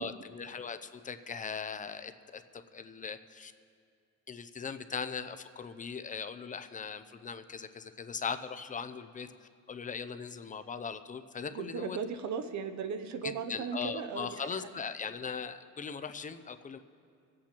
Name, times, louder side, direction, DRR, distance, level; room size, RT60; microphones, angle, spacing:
voice 1, 0.0-3.5 4.3-12.0 13.2-16.8, left 6 dB, 25° left, 10 dB, 0.4 m, -39 dB
voice 2, 11.5-14.3, right 6 dB, 60° right, 8 dB, 0.7 m, -36 dB
24.5 x 8.6 x 2.9 m, 2.2 s
cardioid pair, 120°, 32 cm